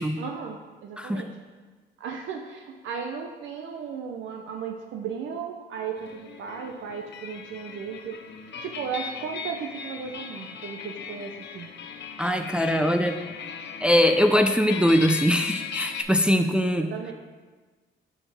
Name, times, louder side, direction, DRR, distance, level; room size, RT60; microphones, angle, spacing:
voice 1, 0.2-1.4 2.0-8.2 8.6-11.7 16.8-17.1, right 6 dB, 75° right, 3 dB, 0.6 m, -35 dB
sound 1, 6.0-16.0, left 6 dB, 60° left, 0.6 m, -38 dB
voice 2, 12.2-13.2 13.8-16.9, equal, 5° right, 6 dB, 0.4 m, -22 dB
8.3 x 4.3 x 3.4 m, 1.3 s
cardioid pair, 90°, 20 cm